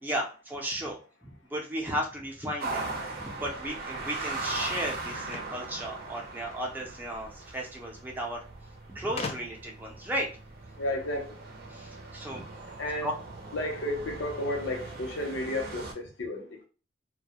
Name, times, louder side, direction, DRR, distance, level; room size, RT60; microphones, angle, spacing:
voice 1, 0.0-8.4 8.9-10.3 11.7-12.4 13.0-13.1, equal, 10° right, 0.6 m, -35 dB
sound 1, 2.6-15.9, right 3 dB, 50° right, 0.6 m, -40 dB
sound 2, 5.2-6.7 7.8-7.9 8.1-8.2 9.2-9.8, left 4 dB, 35° left, 0.3 m, -39 dB
voice 2, 10.8-11.5 12.8-13.2 13.5-16.7, left 1 dB, 80° left, 0.7 m, -33 dB
2.3 x 2.1 x 2.8 m
head